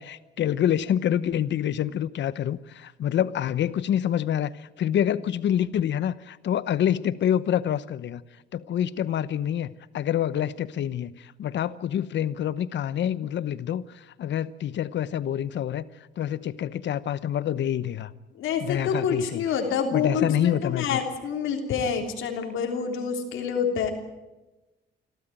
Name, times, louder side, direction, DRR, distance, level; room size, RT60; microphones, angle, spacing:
voice 1, 0.0-8.2 8.5-15.9 16.2-18.1 18.6-19.4 19.9-21.0, left 10 dB, 65° left, 17 dB, 0.9 m, -27 dB
voice 2, 18.4-23.9, left 6 dB, 85° left, 4 dB, 3.4 m, -27 dB
27.5 x 13.0 x 9.2 m, 1.1 s
cardioid pair, 90°, 20 cm